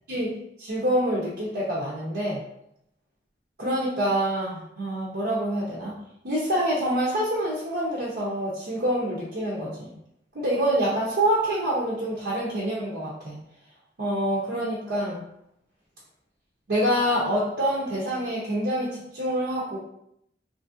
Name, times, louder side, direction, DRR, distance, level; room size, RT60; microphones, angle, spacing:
voice 1, 0.1-2.4 3.6-6.0 6.2-9.9 10.3-13.3 14.0-15.2 16.7-19.8, right 1 dB, 65° right, -6 dB, 0.7 m, -26 dB
3.1 x 2.6 x 2.5 m, 0.76 s
head